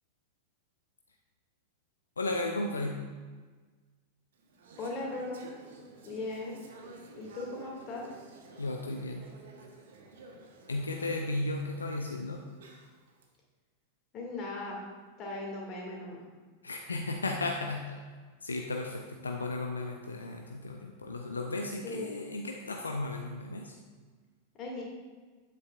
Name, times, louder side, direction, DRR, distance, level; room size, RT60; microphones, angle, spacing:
voice 1, 2.2-3.0 8.6-9.3 10.7-12.4 16.6-18.0 18.4-23.8, left 2 dB, 75° left, 2 dB, 0.5 m, -34 dB
Conversation / Chatter, 4.3-13.3, right 3 dB, 60° right, 1.0 m, -52 dB
voice 2, 4.8-5.5 6.0-6.6 7.2-8.1 14.1-14.8 15.2-16.2 21.8-22.1 24.6-24.8, left 2 dB, 35° left, -1 dB, 2.2 m, -38 dB
9.3 x 8.1 x 2.4 m, 1.4 s
figure-of-eight pair, 90°, 0 cm